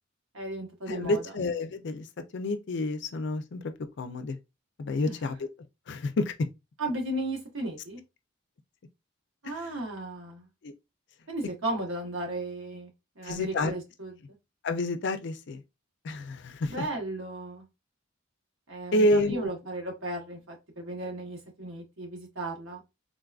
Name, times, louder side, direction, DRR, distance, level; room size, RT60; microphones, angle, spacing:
voice 1, 0.3-1.2 5.0-5.2 6.8-8.0 9.4-10.5 11.3-12.9 13.2-14.1 16.7-17.7 18.7-22.8, right 1 dB, 80° right, 1.2 m, -35 dB
voice 2, 0.9-2.1 2.3-4.4 4.8-5.4 5.9-6.3 9.5-9.7 10.6-10.7 13.2-13.7 14.6-15.6 16.0-16.8 18.9-19.5, left 2 dB, 60° left, 0.4 m, -29 dB
3.8 x 2.4 x 2.3 m
head